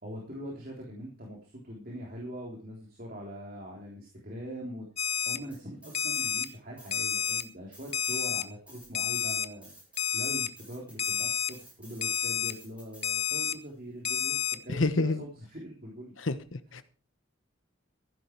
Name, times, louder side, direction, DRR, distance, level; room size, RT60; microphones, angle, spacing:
voice 1, 0.0-4.9 5.3-9.7 10.1-16.1, equal, 45° right, -2 dB, 3.5 m, -42 dB
Alarm, 5.0-5.4 5.9-6.5 6.9-7.4 7.9-8.4 8.9-9.5 10.0-10.5 11.0-11.5 12.0-12.5 13.0-13.5 14.0-14.6, left 8 dB, 30° left, 0.7 m, -30 dB
sound 1, 5.5-6.5 6.8-13.6, right 1 dB, 5° right, 5.8 m, -54 dB
voice 2, 14.7-15.2 16.2-16.8, left 2 dB, 65° left, 12 dB, 1.1 m, -28 dB
15.0 x 11.0 x 4.6 m, 0.37 s
head